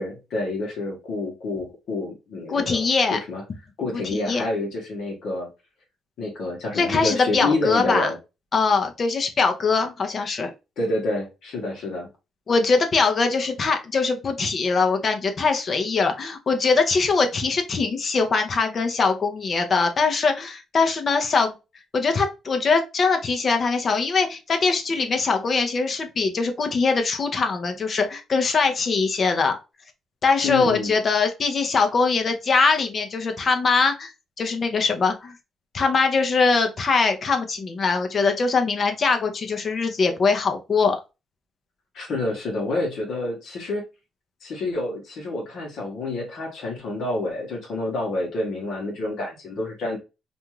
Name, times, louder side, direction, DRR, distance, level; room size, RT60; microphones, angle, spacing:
voice 1, 0.0-2.9 3.1-3.4 3.8-5.5 6.2-8.2 10.8-12.1 30.4-30.9 41.9-43.8 44.4-50.0, left 2 dB, 70° left, 1.0 m, -28 dB
voice 2, 2.5-3.2 3.9-4.4 6.8-8.1 8.5-10.5 12.5-21.5 21.9-29.6 30.2-34.1 34.4-35.3 35.7-41.0, left 4 dB, 45° left, 0.7 m, -22 dB
2.5 x 2.3 x 3.0 m
cardioid pair, 90°, 0 cm